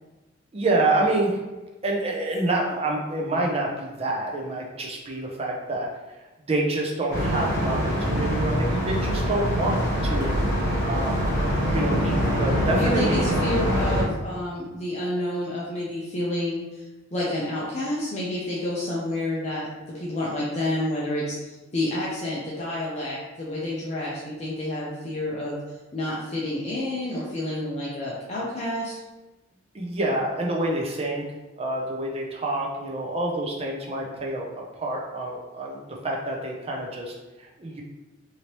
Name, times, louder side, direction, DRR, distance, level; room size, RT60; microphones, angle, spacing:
voice 1, 0.5-1.4 1.8-5.9 6.5-11.3 11.6-13.4 29.7-31.2 31.6-37.8, right 2 dB, 30° right, -1 dB, 0.5 m, -27 dB
sound 1, 7.1-14.0, equal, 55° left, 1.1 m, -24 dB
voice 2, 12.8-25.6 25.9-28.9, left 1 dB, 35° left, -6 dB, 0.5 m, -29 dB
3.0 x 2.8 x 2.9 m, 1.1 s
head